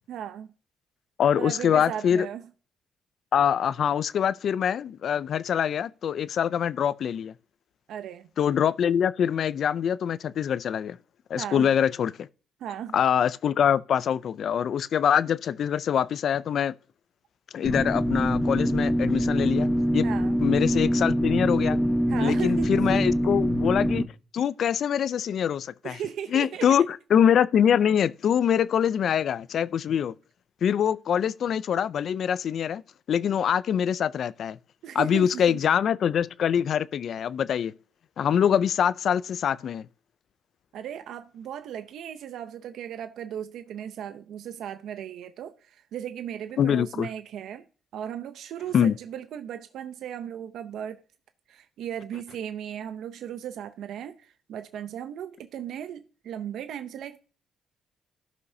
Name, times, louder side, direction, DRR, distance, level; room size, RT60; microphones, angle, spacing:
voice 1, 0.1-0.5 1.4-2.5 7.9-8.3 11.4-11.7 12.6-13.0 20.0-20.4 22.1-23.2 25.8-26.8 34.8-35.6 40.7-47.6 47.9-51.0 51.5-57.2, right 9 dB, 75° right, 0.6 m, -36 dB
voice 2, 1.2-2.3 3.3-7.3 8.4-11.0 11.3-12.3 12.9-16.7 17.5-20.1 20.4-21.8 22.2-24.1 24.3-26.0 26.3-30.1 30.6-32.8 33.1-34.6 34.9-37.7 38.2-39.9 46.6-47.1 48.7-48.9, left 8 dB, 60° left, 0.4 m, -24 dB
sound 1, 17.6-24.0, equal, 5° left, 1.0 m, -24 dB
16.5 x 5.7 x 2.7 m
cardioid pair, 90°, 0 cm